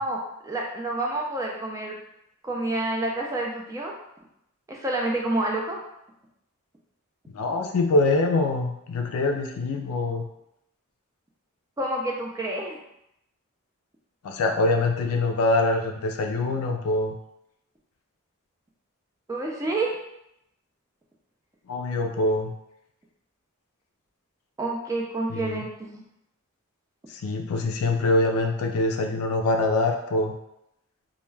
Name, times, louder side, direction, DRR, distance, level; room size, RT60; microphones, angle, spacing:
voice 1, 0.0-2.0 2.4-3.9 4.7-5.8 11.8-12.8 19.3-19.9 24.6-26.0, right 2 dB, 15° right, -1 dB, 0.3 m, -28 dB
voice 2, 7.3-10.2 14.2-17.2 21.7-22.5 25.3-25.6 27.1-30.4, left 2 dB, 80° left, 3 dB, 0.4 m, -24 dB
2.2 x 2.2 x 3.1 m, 0.82 s
head